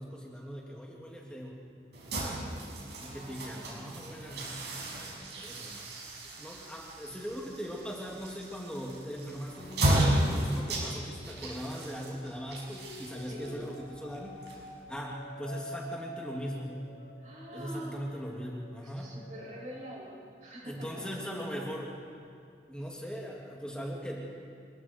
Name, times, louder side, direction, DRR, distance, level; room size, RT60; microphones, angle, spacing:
voice 1, 0.0-1.6 3.0-5.9 6.4-14.4 14.9-16.8 17.5-19.1 20.6-21.9 22.7-24.3, equal, 5° left, -3 dB, 2.5 m, -40 dB
sound 1, 1.9-15.0, right 1 dB, 75° right, 6.2 m, -34 dB
voice 2, 3.0-4.5 13.2-13.6 17.2-18.1 18.8-20.9, equal, 45° right, -3 dB, 6.9 m, -46 dB
sound 2, 10.0-12.0 12.6-20.4 20.7-22.1, left 1 dB, 70° left, 4.7 m, -49 dB
28.0 x 22.0 x 4.6 m, 2.4 s
head